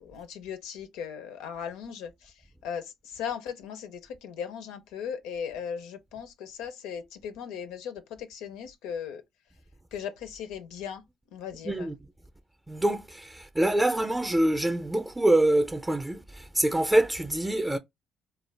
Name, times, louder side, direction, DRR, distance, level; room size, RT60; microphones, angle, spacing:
voice 1, 0.0-9.2 9.9-11.0 11.3-11.9, left 7 dB, 85° left, 0.5 m, -38 dB
voice 2, 11.6-12.0 12.7-17.8, right 1 dB, 15° right, 0.5 m, -25 dB
2.4 x 2.2 x 3.2 m
supercardioid pair, 65°, 0 cm